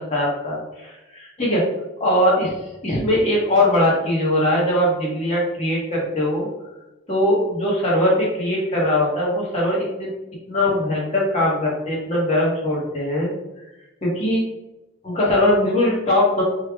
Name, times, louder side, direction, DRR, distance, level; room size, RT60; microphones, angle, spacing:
voice 1, 0.1-1.6 2.0-2.5 2.8-6.5 7.1-10.1 10.5-13.3 14.0-14.4 15.0-16.4, left 1 dB, 30° left, -5 dB, 1.1 m, -20 dB
3.2 x 2.4 x 3.6 m, 1.0 s
head